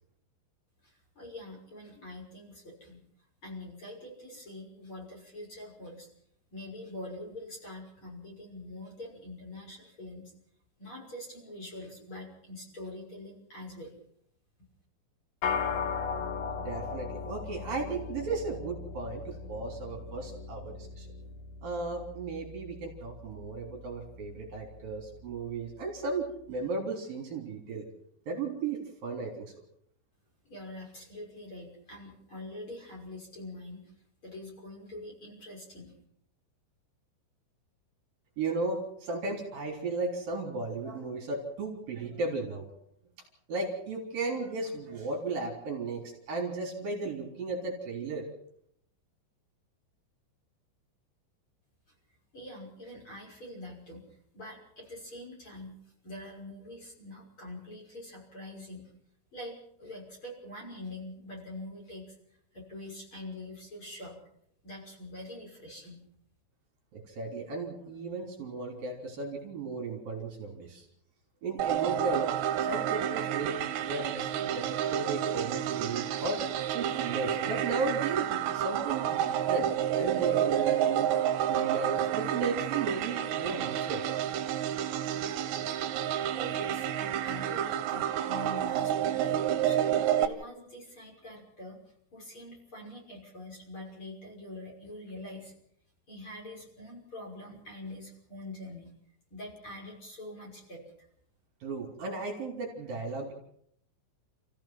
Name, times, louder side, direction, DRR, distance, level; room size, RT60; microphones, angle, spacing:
voice 1, 0.8-3.0 3.4-6.1 6.5-10.3 10.8-13.9 30.5-33.9 34.2-35.9 52.3-58.8 59.3-62.2 62.5-64.2 64.6-66.0 85.8-85.9 86.3-91.8 92.1-95.5 96.1-98.9 99.3-101.1, left 1 dB, 25° left, -1 dB, 6.5 m, -44 dB
sound 1, 15.4-25.0, left 5 dB, 60° left, 2.9 m, -38 dB
voice 2, 16.6-21.1 21.6-27.8 28.3-29.6 38.4-42.6 43.5-48.2 66.9-70.8 71.4-72.3 72.6-76.4 76.7-79.7 79.9-81.1 81.5-84.0 101.6-103.3, right 3 dB, 55° right, 0 dB, 5.0 m, -35 dB
sound 2, 71.6-90.3, right 10 dB, 75° right, 3.4 m, -30 dB
29.5 x 15.5 x 5.9 m, 0.69 s
omnidirectional pair, 5.2 m